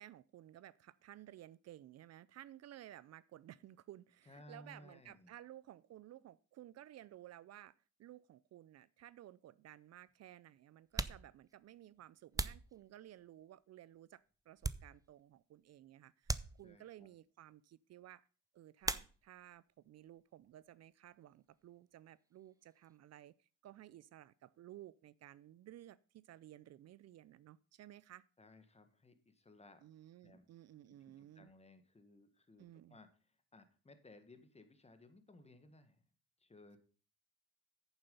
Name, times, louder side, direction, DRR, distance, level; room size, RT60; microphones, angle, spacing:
voice 1, 0.0-18.2 18.5-28.3 29.8-31.5 32.6-33.0, right 13 dB, 60° right, 19 dB, 0.5 m, -56 dB
voice 2, 4.3-5.3 16.6-17.1 28.4-29.8 30.2-30.5 31.0-36.0 36.4-36.8, left 2 dB, 20° left, 9 dB, 1.6 m, -60 dB
sound 1, 9.1-9.2 10.1-10.2 10.8-13.4 14.0-15.3 15.6-15.8 16.2-17.1 18.8-19.6 19.9-20.6 20.8-23.0, right 3 dB, 10° right, 0.6 m, -43 dB
9.0 x 7.1 x 5.4 m, 0.39 s
cardioid pair, 90°, 30 cm